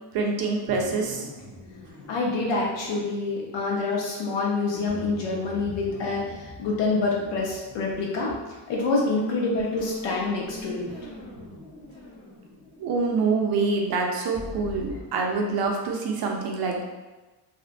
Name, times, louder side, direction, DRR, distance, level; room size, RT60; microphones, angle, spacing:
voice 1, 0.1-1.3 12.8-16.8, right 4 dB, 55° right, 1 dB, 0.5 m, -26 dB
sound 1, 0.7-4.4 4.9-9.4 9.8-15.0, left 1 dB, 25° left, 0.7 m, -43 dB
voice 2, 2.1-8.3 8.7-10.9, left 3 dB, 70° left, -3 dB, 0.8 m, -26 dB
2.6 x 2.3 x 2.4 m, 1.2 s
cardioid pair, 170°, 45 cm